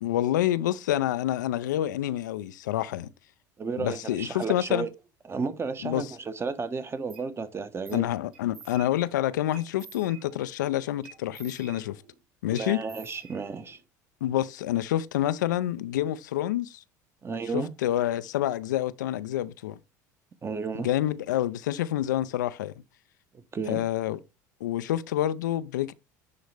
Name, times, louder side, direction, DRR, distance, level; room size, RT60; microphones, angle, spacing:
voice 1, 0.0-3.1 3.8-4.9 5.8-6.1 7.9-12.0 12.4-12.8 14.2-16.8 17.5-19.8 20.8-22.7 23.7-24.2 24.6-25.9, left 13 dB, 75° left, 0.4 m, -28 dB
voice 2, 3.6-4.9 5.2-8.0 12.5-13.8 17.2-17.7 20.4-20.9 23.3-23.8, right 5 dB, 25° right, 1.1 m, -33 dB
sound 1, 7.1-7.3 7.9-8.1 8.3-9.1 9.5-10.5 11.0-12.2 12.6-13.8, right 7 dB, 55° right, 3.7 m, -50 dB
10.5 x 3.9 x 3.3 m
hypercardioid pair, 70°, 10 cm